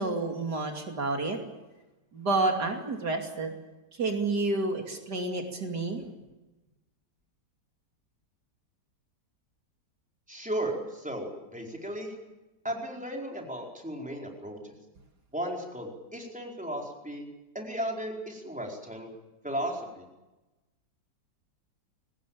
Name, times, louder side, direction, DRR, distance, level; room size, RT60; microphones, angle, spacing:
voice 1, 0.0-1.4 2.1-3.5 4.0-6.0, right 3 dB, 65° right, 3 dB, 3.4 m, -29 dB
voice 2, 10.3-12.1 12.6-14.7 15.3-17.3 17.5-19.1 19.4-20.0, right 1 dB, 5° right, 0 dB, 4.7 m, -35 dB
23.0 x 19.5 x 8.9 m, 1.0 s
omnidirectional pair, 1.9 m